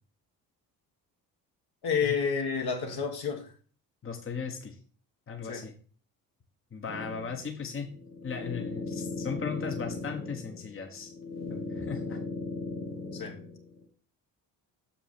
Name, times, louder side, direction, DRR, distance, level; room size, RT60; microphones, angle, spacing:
voice 1, 1.8-3.5 5.4-5.6 13.1-13.4, left 6 dB, 50° left, 3 dB, 1.7 m, -30 dB
voice 2, 4.0-4.8 5.3-5.7 6.7-7.9 8.2-11.1 11.5-12.2, left 6 dB, 25° left, 4 dB, 1.3 m, -37 dB
sound 1, 6.9-13.8, left 3 dB, 75° left, 1.6 m, -38 dB
6.8 x 5.7 x 4.3 m, 0.41 s
figure-of-eight pair, 45°, 48 cm